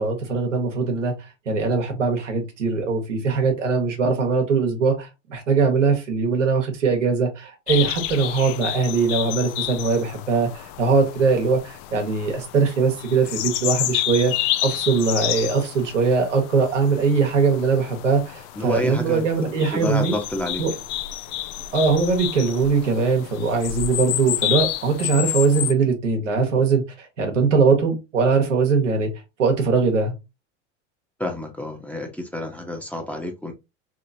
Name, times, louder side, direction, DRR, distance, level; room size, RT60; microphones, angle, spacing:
voice 1, 0.0-14.3 14.6-20.1 20.6-20.7 21.7-29.1 29.4-30.1, right 4 dB, 90° right, 1.1 m, -21 dB
sound 1, 7.7-25.7, left 14 dB, 50° left, 0.4 m, -30 dB
voice 2, 18.5-20.6 31.2-33.5, left 1 dB, 5° left, 0.9 m, -29 dB
3.0 x 2.9 x 2.6 m
hypercardioid pair, 85°, 36 cm